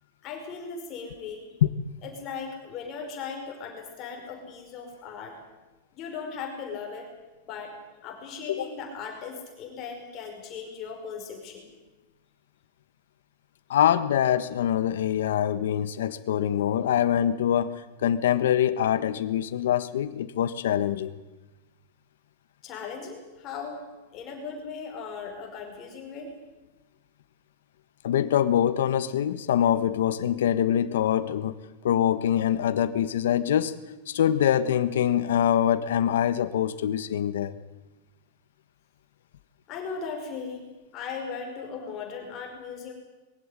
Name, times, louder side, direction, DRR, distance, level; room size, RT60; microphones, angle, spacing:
voice 1, 0.2-1.5 2.0-5.4 5.9-7.1 7.5-7.8 8.0-11.7 22.6-23.8 24.1-26.3 39.7-42.9, left 5 dB, 25° left, 2 dB, 5.2 m, -38 dB
voice 2, 13.7-21.1 28.0-31.6 31.8-33.8 34.1-37.6, left 10 dB, 75° left, 12 dB, 1.4 m, -24 dB
21.5 x 16.0 x 10.0 m, 1.1 s
supercardioid pair, 175°, 0 cm